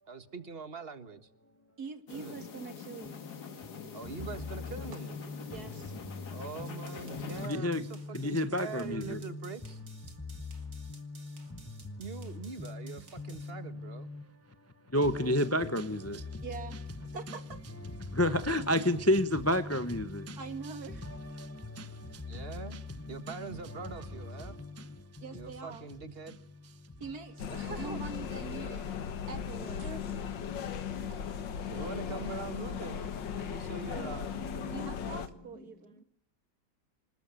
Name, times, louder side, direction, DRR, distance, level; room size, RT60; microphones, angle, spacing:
voice 1, 0.1-1.3 2.1-2.4 3.9-5.2 6.3-9.8 12.0-14.1 22.3-22.8 23.1-24.6 25.3-26.4 27.5-28.1 29.8-30.3 31.7-34.3, right 5 dB, 35° right, 1.7 m, -43 dB
voice 2, 1.8-3.3 5.5-5.9 16.4-16.8 17.1-17.6 20.4-21.1 25.2-25.9 27.0-27.5 27.8-28.9 29.3-29.9 34.7-36.0, right 5 dB, 60° right, 2.3 m, -43 dB
sound 1, 2.1-7.5, left 7 dB, 65° left, 2.2 m, -44 dB
voice 3, 5.1-5.5 6.0-9.6 10.1-12.0 12.6-14.3 14.9-16.5 17.0-17.2 17.8-20.7 21.0-23.4 24.4-25.2 26.8-26.9 31.8-32.2 33.9-35.2, left 1 dB, 10° left, 0.8 m, -33 dB
sound 2, 6.7-13.5, right 4 dB, 85° right, 3.6 m, -57 dB
sound 3, 27.4-35.3, left 7 dB, 90° left, 2.1 m, -37 dB
27.0 x 20.0 x 9.0 m
omnidirectional pair, 1.9 m